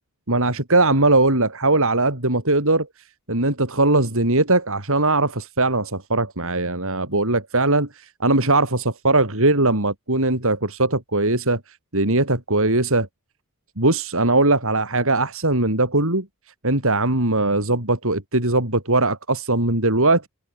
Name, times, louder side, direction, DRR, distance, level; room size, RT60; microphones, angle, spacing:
voice 1, 0.3-2.9 3.3-13.1 13.8-16.3 16.6-20.3, right 2 dB, 65° right, 6.1 m, -20 dB
head